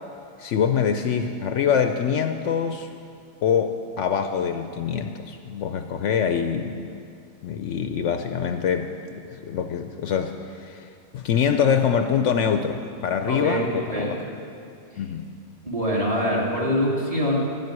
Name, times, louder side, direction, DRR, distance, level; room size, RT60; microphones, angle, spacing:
voice 1, 0.4-2.9 3.4-6.8 7.4-10.9 11.1-14.1 15.0-15.3, left 7 dB, 70° left, 7 dB, 0.9 m, -24 dB
voice 2, 13.3-14.1 15.6-17.4, equal, 25° right, -4 dB, 2.5 m, -24 dB
11.5 x 7.6 x 9.6 m, 2.5 s
omnidirectional pair, 1.4 m